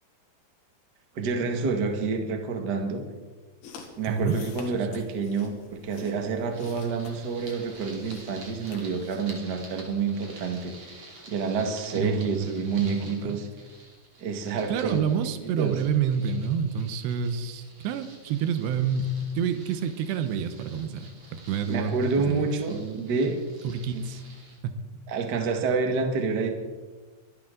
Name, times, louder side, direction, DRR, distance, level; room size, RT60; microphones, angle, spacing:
voice 1, 1.1-3.0 4.0-13.5 14.2-15.0 15.6-15.8 21.7-23.4 23.9-24.0 25.1-26.5, right 4 dB, 60° right, 4 dB, 1.0 m, -28 dB
sound 1, 3.6-9.3, left 5 dB, 75° left, 3.9 m, -48 dB
voice 2, 4.1-4.4 4.7-4.9 11.9-13.4 14.7-23.1 23.6-24.2 24.6-24.8, right 7 dB, 85° right, 9 dB, 3.1 m, -29 dB
sound 2, 6.5-24.6, right 2 dB, 40° right, 3.7 m, -49 dB
24.0 x 12.0 x 3.9 m, 1.3 s
omnidirectional pair, 4.8 m